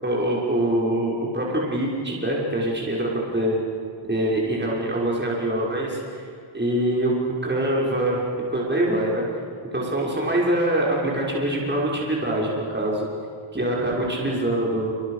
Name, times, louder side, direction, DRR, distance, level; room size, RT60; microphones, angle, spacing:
voice 1, 0.0-3.6 4.1-6.2 6.5-7.1 7.4-8.3 8.5-9.2 9.7-13.1 13.5-14.9, right 1 dB, 20° right, -4 dB, 6.1 m, -24 dB
28.5 x 27.0 x 6.8 m, 2.3 s
wide cardioid pair, 70°, 47 cm